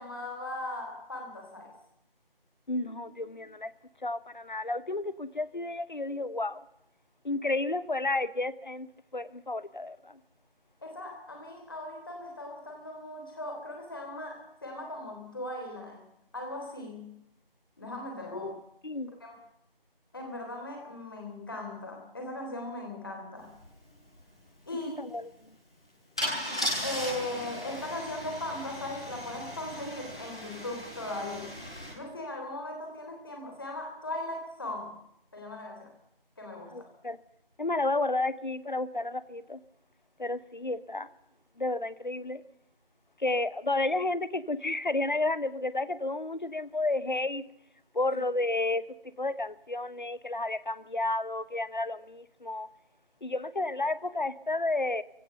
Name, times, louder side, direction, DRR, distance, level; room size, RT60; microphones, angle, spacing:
voice 1, 0.0-1.7 10.8-16.1 16.3-17.1 17.8-18.6 19.2-19.4 20.1-23.5 24.7-25.0 26.8-31.5 31.9-35.0 35.3-35.9 36.4-36.9, left 1 dB, 25° left, 2 dB, 3.5 m, -38 dB
voice 2, 2.7-3.7 4.0-6.6 7.2-10.2 18.3-18.5 18.8-19.1 25.0-25.3 36.7-37.2 37.6-39.6 40.2-41.1 41.6-42.4 43.2-47.4 47.9-48.8 49.2-52.7 53.2-55.0, left 2 dB, 55° left, 17 dB, 0.9 m, -31 dB
Car / Engine starting / Idling, 23.5-23.6 23.9-24.2 26.2-31.9, equal, 5° left, 1.6 m, -37 dB
23.5 x 16.5 x 6.7 m, 0.75 s
figure-of-eight pair, 170°, 29 cm